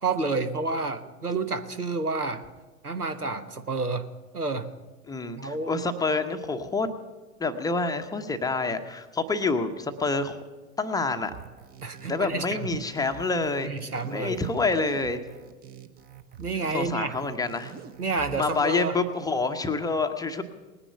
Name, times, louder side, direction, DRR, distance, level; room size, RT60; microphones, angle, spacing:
voice 1, 0.0-2.5 2.8-4.1 4.3-4.7 5.4-5.8 11.8-12.8 13.6-14.4 16.4-17.2 18.0-19.0, right 3 dB, 90° right, 10 dB, 1.2 m, -29 dB
voice 2, 5.1-6.9 7.4-10.4 10.8-11.3 12.1-13.7 14.1-15.2 16.7-17.7 18.4-20.4, left 3 dB, 10° left, 6 dB, 0.8 m, -27 dB
sound 1, 11.2-18.6, right 7 dB, 20° right, 0.8 m, -45 dB
19.5 x 10.0 x 6.8 m, 1.3 s
figure-of-eight pair, 95°, 44 cm